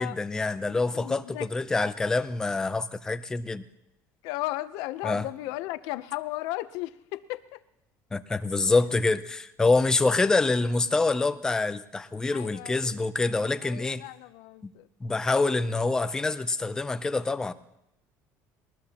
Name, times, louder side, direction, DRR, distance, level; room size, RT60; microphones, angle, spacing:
voice 1, 0.0-3.6 5.0-5.3 8.1-14.0 14.6-14.7 15.0-17.5, left 3 dB, 10° left, 11 dB, 0.5 m, -26 dB
voice 2, 0.9-1.5 4.2-7.6 12.3-13.0 13.6-14.9, left 17 dB, 75° left, 13 dB, 0.7 m, -35 dB
22.0 x 19.5 x 2.9 m, 0.88 s
cardioid pair, 180°, 6 cm